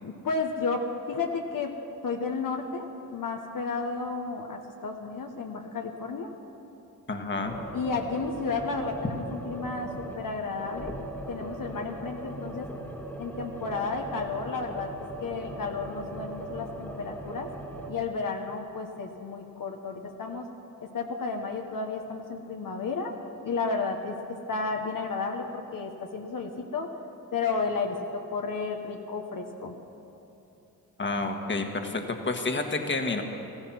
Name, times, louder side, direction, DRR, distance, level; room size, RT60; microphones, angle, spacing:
voice 1, 0.0-1.7 2.0-6.3 7.7-10.9 11.3-12.7 13.2-14.9 15.2-17.5 17.9-20.5 20.8-23.2 23.4-24.2 24.5-26.9 27.3-29.7, left 4 dB, 60° left, 2 dB, 1.2 m, -32 dB
voice 2, 7.1-7.6 31.0-33.2, left 3 dB, 30° left, 4 dB, 1.5 m, -29 dB
sound 1, 7.4-10.3 10.6-17.9, right 1 dB, 5° left, 1.9 m, -39 dB
15.5 x 14.5 x 6.1 m, 3.0 s
cardioid pair, 70°, 36 cm